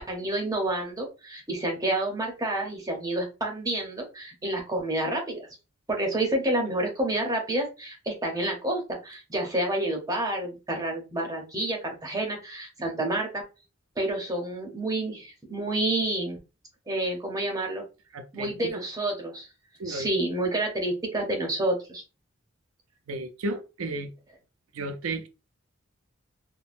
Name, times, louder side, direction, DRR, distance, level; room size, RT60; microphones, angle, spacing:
voice 1, 0.0-5.5 5.9-13.4 14.0-16.4 16.9-17.8 18.3-19.5 19.9-22.0, right 1 dB, 15° right, 0.6 m, -29 dB
voice 2, 18.1-18.8 19.8-20.1 23.1-24.1 24.7-25.3, right 2 dB, 85° right, 0.4 m, -33 dB
3.5 x 2.1 x 2.4 m
head